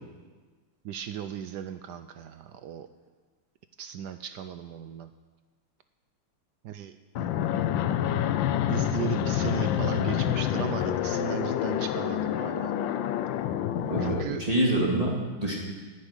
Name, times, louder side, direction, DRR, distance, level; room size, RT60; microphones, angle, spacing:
voice 1, 0.8-2.9 3.8-5.1 6.6-7.3 8.0-8.2 8.7-12.7 14.0-14.4, right 10 dB, 75° right, 10 dB, 1.0 m, -36 dB
Fixed-wing aircraft airplane, 7.2-14.2, left 11 dB, 75° left, 1.3 m, -27 dB
voice 2, 13.8-15.5, right 1 dB, 20° right, -4 dB, 2.5 m, -26 dB
11.0 x 9.7 x 9.8 m, 1.4 s
omnidirectional pair, 2.2 m